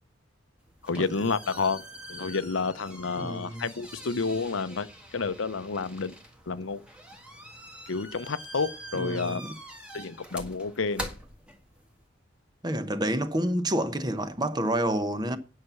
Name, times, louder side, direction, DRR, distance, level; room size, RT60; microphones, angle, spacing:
sound 1, 0.6-12.0, right 1 dB, 5° right, 1.6 m, -44 dB
voice 1, 0.8-1.8 2.1-4.9 5.1-6.1 6.5-6.8 7.9-9.4 9.9-11.1, left 4 dB, 80° left, 0.7 m, -30 dB
voice 2, 3.2-3.6 8.9-9.6 12.6-15.4, right 1 dB, 20° right, 0.9 m, -28 dB
9.7 x 5.8 x 7.0 m
head